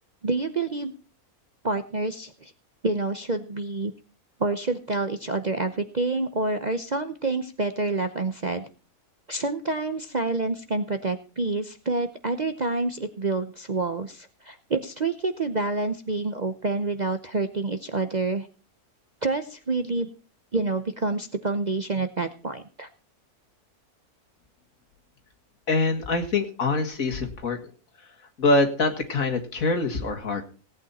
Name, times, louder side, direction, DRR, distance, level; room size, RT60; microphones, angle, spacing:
voice 1, 0.2-0.9 1.6-2.5 2.8-3.9 4.4-8.7 9.3-18.5 19.2-20.1 20.5-22.9, right 3 dB, 40° right, 8 dB, 0.7 m, -28 dB
voice 2, 25.7-27.6 28.4-30.4, left 3 dB, 65° left, 4 dB, 2.2 m, -24 dB
17.5 x 8.8 x 4.2 m, 0.37 s
omnidirectional pair, 1.6 m